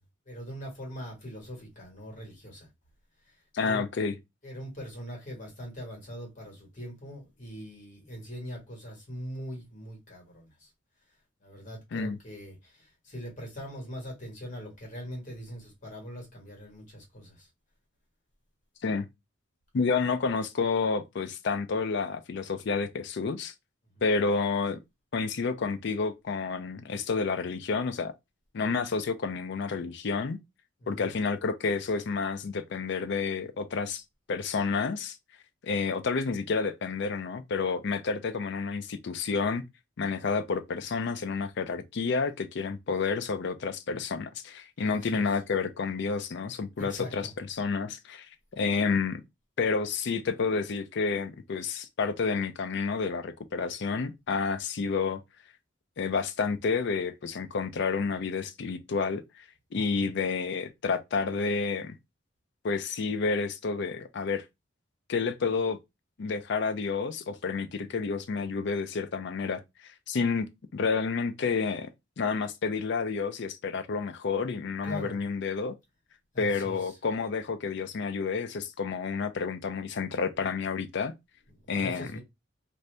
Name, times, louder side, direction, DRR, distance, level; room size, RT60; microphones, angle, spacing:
voice 1, 0.2-2.7 3.6-3.8 4.4-10.7 11.4-17.5 23.9-24.0 30.8-31.1 44.9-45.3 46.8-47.3 59.7-60.1 74.8-75.2 76.3-77.0 81.6-82.2, equal, 40° left, 1.5 m, -42 dB
voice 2, 3.5-4.1 11.9-12.2 18.8-19.1 19.7-23.5 24.0-24.8 25.1-28.1 28.5-30.4 30.9-34.0 34.3-35.2 35.6-39.6 40.0-48.3 48.5-49.2 49.6-55.2 56.0-59.4 59.7-62.0 62.6-64.4 65.1-65.8 66.2-71.9 72.2-75.7 76.4-81.1 81.7-82.2, left 4 dB, 60° left, 0.4 m, -30 dB
2.7 x 2.6 x 3.2 m
head